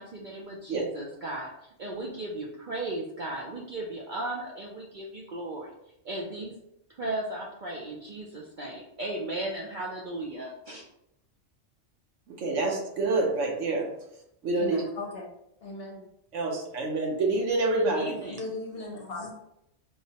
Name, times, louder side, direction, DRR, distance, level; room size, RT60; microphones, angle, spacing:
voice 1, 0.0-5.7 6.0-6.5 7.0-10.8 17.7-18.4, right 2 dB, 55° right, -2 dB, 0.5 m, -36 dB
voice 2, 12.3-13.9 14.4-14.8 16.3-18.2, right 2 dB, 75° right, 1 dB, 1.1 m, -27 dB
voice 3, 14.6-15.3 15.6-16.0 18.3-19.3, left 2 dB, 55° left, 0 dB, 0.9 m, -37 dB
4.7 x 2.1 x 2.8 m, 0.80 s
omnidirectional pair, 1.3 m